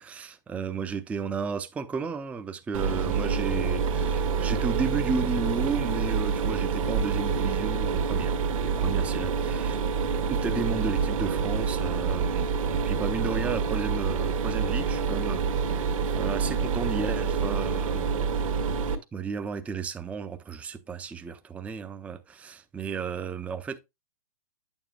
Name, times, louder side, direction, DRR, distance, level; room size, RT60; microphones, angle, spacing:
voice 1, 0.0-9.8 10.3-18.3 19.1-23.8, right 5 dB, 5° right, 0.4 m, -33 dB
Mechanisms, 2.7-18.9, right 5 dB, 65° right, 1.4 m, -27 dB
8.7 x 7.1 x 2.2 m
hypercardioid pair, 125°, 18 cm